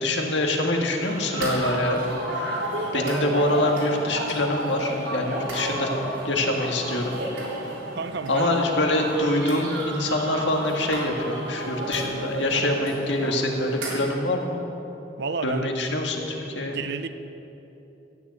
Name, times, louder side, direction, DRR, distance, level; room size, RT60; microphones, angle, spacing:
voice 1, 0.0-2.0 2.9-5.9 6.2-7.2 8.3-14.6 15.4-16.8, left 1 dB, 65° left, 2 dB, 1.8 m, -25 dB
sound 1, 1.0-14.1, right 1 dB, 80° right, 3.8 m, -32 dB
voice 2, 7.9-8.6 12.5-12.7 15.2-15.7 16.6-17.1, right 4 dB, 60° right, 11 dB, 0.7 m, -30 dB
13.0 x 9.8 x 8.3 m, 3.0 s
head